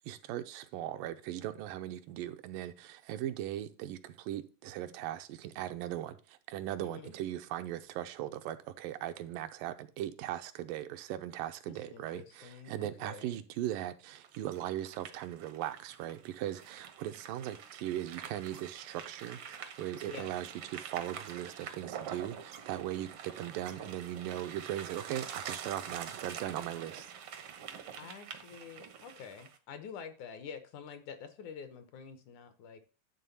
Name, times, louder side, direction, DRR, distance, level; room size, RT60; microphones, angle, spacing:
voice 1, 0.1-27.1, right 12 dB, 85° right, 2.4 m, -39 dB
voice 2, 6.8-7.1 11.7-13.4 20.1-20.3 28.0-32.8, left 6 dB, 70° left, 2.3 m, -47 dB
sound 1, 14.1-29.6, right 8 dB, 70° right, 1.3 m, -46 dB
11.0 x 3.7 x 6.9 m
omnidirectional pair, 3.8 m